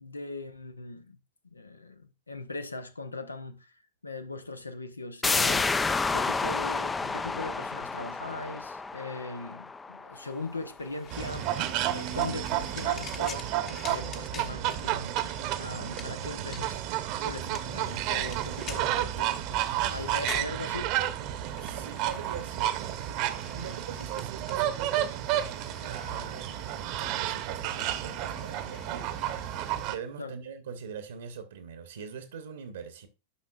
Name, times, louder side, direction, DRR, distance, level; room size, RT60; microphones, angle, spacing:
voice 1, 0.0-5.7 6.1-15.1 15.6-16.8 17.1-19.5 19.9-21.0 30.2-30.4, left 2 dB, 80° left, 0.8 m, -40 dB
sound 1, 5.2-10.7 11.1-11.2, left 4 dB, 15° left, 0.4 m, -30 dB
sound 2, 10.1-29.9, left 6 dB, 30° left, 1.1 m, -48 dB
sound 3, 11.1-29.9, right 12 dB, 45° right, 0.9 m, -31 dB
voice 2, 21.4-23.0 23.5-25.1 25.8-33.1, right 6 dB, 65° right, 1.0 m, -43 dB
11.5 x 5.8 x 2.4 m
figure-of-eight pair, 90°, 0 cm